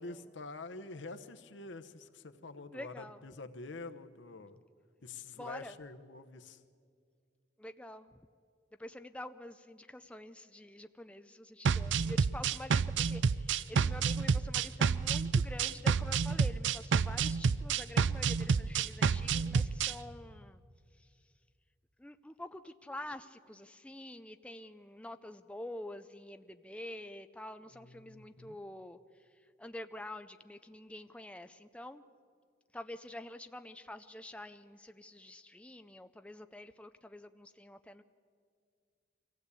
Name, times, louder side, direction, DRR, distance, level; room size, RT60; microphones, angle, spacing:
voice 1, 0.0-4.6 5.0-6.6 27.7-28.6, left 3 dB, 90° left, 9 dB, 1.0 m, -47 dB
voice 2, 2.6-3.2 5.4-5.7 7.6-8.2 8.8-20.6 21.0-21.1 22.0-29.0 29.6-32.0 32.7-38.0, left 1 dB, 5° left, 9 dB, 0.5 m, -47 dB
sound 1, 11.6-19.9, right 5 dB, 85° right, 0.5 m, -29 dB
24.0 x 16.0 x 8.3 m, 2.2 s
head